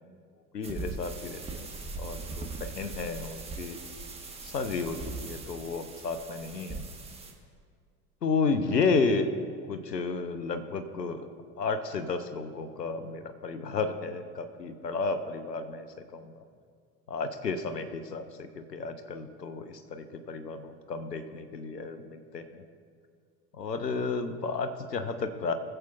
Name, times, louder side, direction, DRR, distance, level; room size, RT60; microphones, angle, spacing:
voice 1, 0.5-1.7 2.0-3.8 4.4-6.8 8.2-9.3 9.6-11.3 11.6-16.4 17.1-22.6 23.5-25.5, left 4 dB, 80° left, 9 dB, 0.9 m, -32 dB
sound 1, 0.6-7.3, right 3 dB, 10° right, 1.4 m, -40 dB
22.5 x 7.7 x 2.5 m, 2.1 s
figure-of-eight pair, 75°, 48 cm